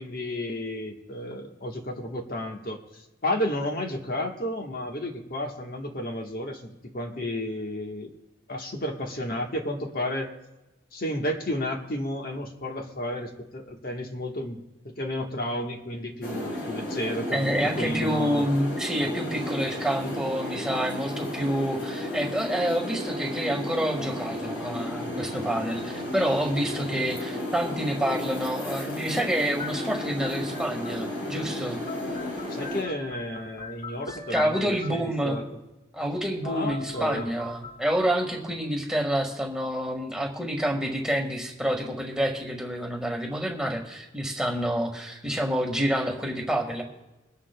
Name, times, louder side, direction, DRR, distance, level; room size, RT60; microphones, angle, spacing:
voice 1, 0.0-8.1 8.5-10.3 10.9-14.6 15.0-18.5 32.5-35.6 36.4-37.3, left 1 dB, 50° left, 1 dB, 1.3 m, -32 dB
sound 1, 16.2-32.8, left 1 dB, 75° left, 4.9 m, -33 dB
voice 2, 17.3-31.8 34.3-35.4 35.9-46.8, equal, 5° right, 1 dB, 1.6 m, -28 dB
sound 2, 29.6-31.4 31.6-35.2 36.1-36.2 36.4-38.6, left 4 dB, 30° left, 2.0 m, -41 dB
23.0 x 11.0 x 2.3 m, 1.0 s
head